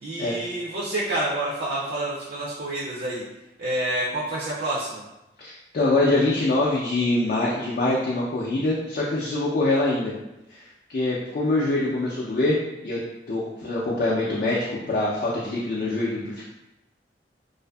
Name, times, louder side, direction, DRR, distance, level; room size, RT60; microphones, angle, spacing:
voice 1, 0.0-3.2 3.6-5.0, right 1 dB, 60° right, -6 dB, 0.4 m, -28 dB
voice 2, 5.4-10.1 10.6-12.6 12.8-13.0 13.3-16.4, left 2 dB, 50° left, -5 dB, 0.4 m, -24 dB
2.5 x 2.5 x 2.3 m, 0.95 s
head